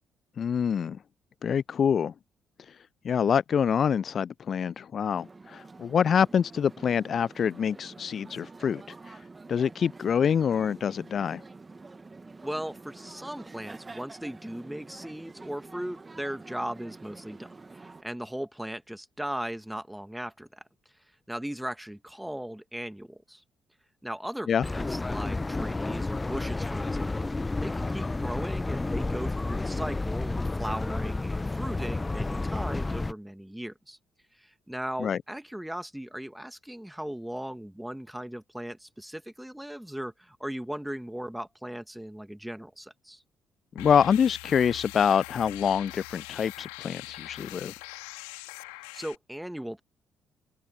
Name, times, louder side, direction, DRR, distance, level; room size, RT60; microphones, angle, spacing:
voice 1, 0.4-1.0 1.4-2.1 2.7-2.8 3.0-9.2 9.5-11.4 24.5-24.6 35.0-35.2 43.8-47.7, left 7 dB, 45° left, 0.5 m, -26 dB
sound 1, 5.1-18.0, right 3 dB, 25° right, 1.9 m, -48 dB
voice 2, 12.4-20.6 21.3-23.4 24.0-27.3 27.6-34.0 34.3-43.2 48.9-49.8, right 1 dB, 5° right, 2.4 m, -38 dB
sound 2, 24.6-33.1, left 2 dB, 20° left, 1.1 m, -31 dB
sound 3, 43.8-49.2, left 40 dB or more, 70° left, 3.1 m, -42 dB
open air
figure-of-eight pair, 45°, 0 cm